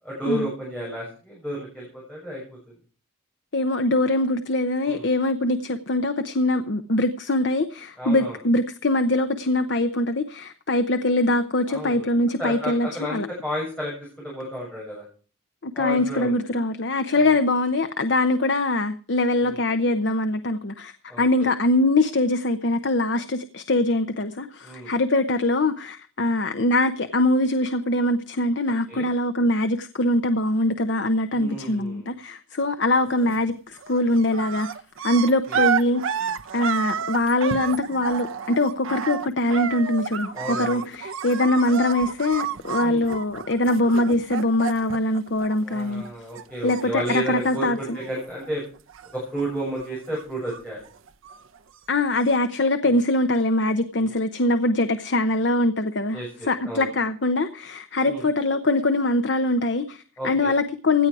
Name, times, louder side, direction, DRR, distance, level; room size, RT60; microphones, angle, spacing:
voice 1, 0.0-2.7 4.8-5.1 8.0-8.4 11.7-12.1 12.4-15.0 15.7-16.3 17.1-17.4 19.4-19.6 21.1-21.5 24.6-24.9 28.9-29.1 31.3-32.1 35.5-35.6 40.3-40.9 42.8-43.0 45.6-48.6 49.1-50.9 52.9-53.0 54.0-54.1 56.1-56.9 58.0-58.2 60.2-60.5, equal, 5° left, 7.0 m, -32 dB
voice 2, 3.5-13.3 15.6-34.7 35.0-36.3 36.5-46.0 46.6-48.0 51.9-56.2 56.5-61.1, left 2 dB, 55° left, 0.8 m, -23 dB
sound 1, 33.1-33.5 33.8-46.1 46.3-48.5 48.8-49.4 49.7-51.6 52.3-52.4, right 7 dB, 75° right, 0.7 m, -31 dB
17.0 x 11.0 x 4.8 m
head